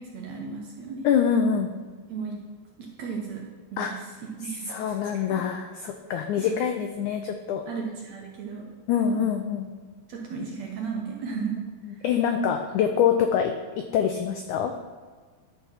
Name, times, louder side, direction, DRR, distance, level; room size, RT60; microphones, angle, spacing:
voice 1, 0.0-1.1 2.1-2.4 2.8-3.4 3.7-5.4 6.4-6.6 7.7-8.7 9.1-9.3 10.1-11.6 11.9-12.1, right 5 dB, 65° right, 0 dB, 1.8 m, -35 dB
voice 2, 1.0-1.7 3.8-4.0 4.7-7.7 8.9-9.7 11.9-13.5 13.9-14.7, left 8 dB, 90° left, 5 dB, 1.7 m, -25 dB
11.5 x 4.6 x 5.6 m, 1.4 s
omnidirectional pair, 4.2 m